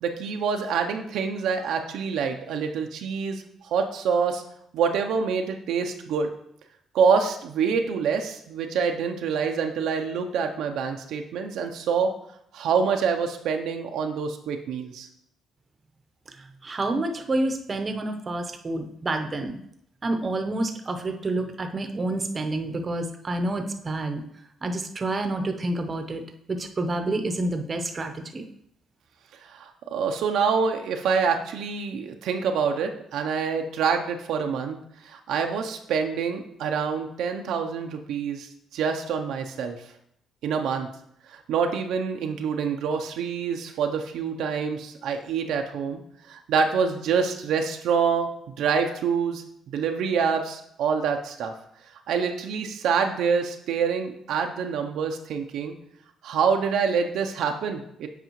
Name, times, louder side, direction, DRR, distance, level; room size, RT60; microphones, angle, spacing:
voice 1, 0.0-4.4 4.7-6.3 6.9-12.1 12.5-15.1 29.4-39.8 40.4-40.9 41.3-46.0 46.3-48.3 48.6-51.5 52.1-55.7 56.2-58.1, right 6 dB, 80° right, 4 dB, 0.6 m, -26 dB
voice 2, 16.4-19.6 20.0-24.2 24.6-26.2 26.5-28.4, right 2 dB, 35° right, 6 dB, 0.7 m, -28 dB
8.0 x 4.8 x 3.1 m, 0.73 s
cardioid pair, 90°, 0 cm